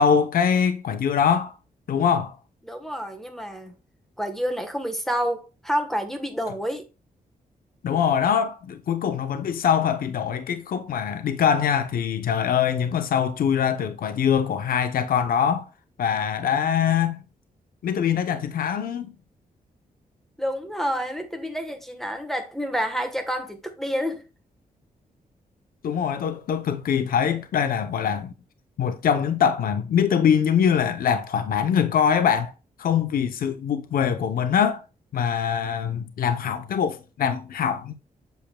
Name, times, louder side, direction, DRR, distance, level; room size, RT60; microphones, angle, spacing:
voice 1, 0.0-1.5 1.9-2.4 7.8-15.7 16.0-17.2 17.8-19.1 25.8-28.3 28.8-32.5 32.8-34.8 35.1-37.9, left 7 dB, 75° left, 0.7 m, -23 dB
voice 2, 2.6-3.7 4.2-6.9 20.4-24.2, equal, ahead, 1.1 m, -28 dB
8.0 x 6.7 x 2.2 m
wide cardioid pair, 125°, 15 cm